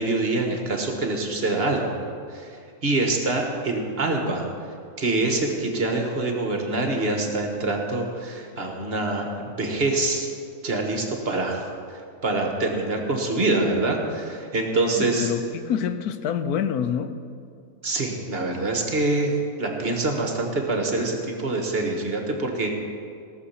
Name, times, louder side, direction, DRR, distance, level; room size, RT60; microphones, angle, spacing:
voice 1, 0.0-1.9 2.3-4.5 5.0-10.3 10.6-11.6 12.2-15.3 17.8-22.7, right 2 dB, 45° right, 1.4 m, -25 dB
voice 2, 15.0-17.1, left 8 dB, 85° left, 1.2 m, -26 dB
17.0 x 6.7 x 5.7 m
omnidirectional pair, 1.6 m